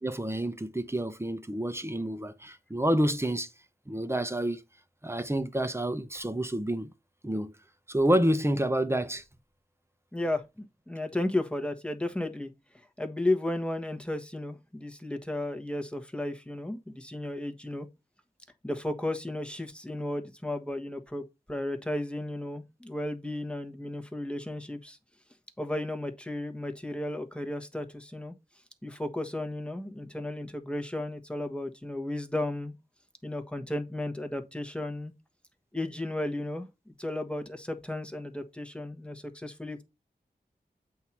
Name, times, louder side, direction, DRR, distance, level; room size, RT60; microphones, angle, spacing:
voice 1, 0.0-3.5 3.9-4.6 5.0-6.9 7.2-7.5 7.9-9.2, right 1 dB, 15° right, 0.9 m, -28 dB
voice 2, 10.1-12.5 13.0-17.9 18.6-25.0 25.6-28.3 28.8-32.7 33.2-35.1 35.7-39.8, left 1 dB, 5° left, 1.3 m, -34 dB
8.2 x 2.8 x 5.9 m
wide cardioid pair, 55°, 17 cm